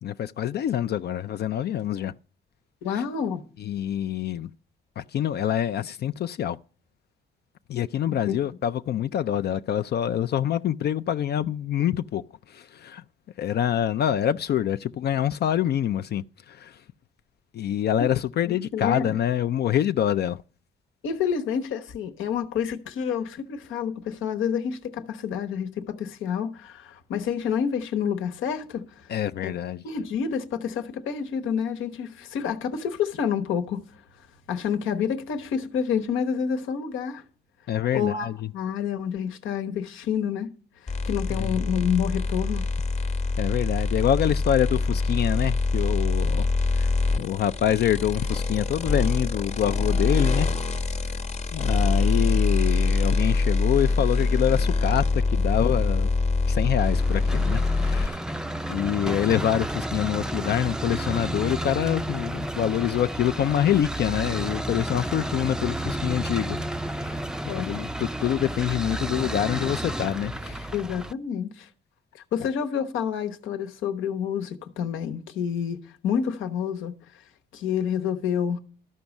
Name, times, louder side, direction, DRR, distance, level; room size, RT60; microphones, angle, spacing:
voice 1, 0.0-2.1 2.9-3.0 3.6-4.5 5.0-6.6 7.7-13.0 13.4-16.8 17.5-20.4 29.1-29.8 37.7-38.5 41.3-41.6 43.4-46.5 46.7-50.5 51.5-56.1 56.5-58.2 58.7-66.6 66.9-70.7, left 10 dB, 55° left, 0.4 m, -26 dB
voice 2, 2.8-3.4 8.1-8.3 18.0-18.1 18.7-19.1 21.0-29.1 29.4-29.5 29.8-33.8 34.5-37.2 37.9-38.3 38.5-40.5 40.8-42.7 67.5-67.7 70.7-71.7 72.3-76.9 77.5-78.6, left 7 dB, 85° left, 1.1 m, -28 dB
sound 1, 40.9-58.1, left 3 dB, 35° left, 1.0 m, -24 dB
sound 2, 56.8-71.1, right 1 dB, 5° right, 0.4 m, -31 dB
13.0 x 5.4 x 7.0 m
cardioid pair, 90°, 20 cm